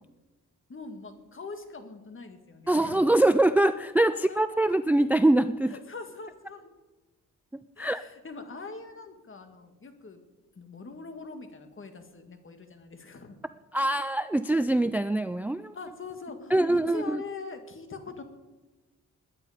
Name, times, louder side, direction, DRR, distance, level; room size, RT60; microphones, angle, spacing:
voice 1, 0.7-3.1 4.1-4.6 5.7-6.8 7.8-10.2 10.6-13.4 13.8-14.0 15.7-18.2, left 4 dB, 40° left, 7 dB, 1.8 m, -43 dB
voice 2, 2.7-5.7 7.8-8.0 13.7-15.7 16.5-17.2, right 1 dB, 5° right, 13 dB, 0.3 m, -23 dB
20.5 x 9.7 x 5.0 m, 1.2 s
wide cardioid pair, 105°, 32 cm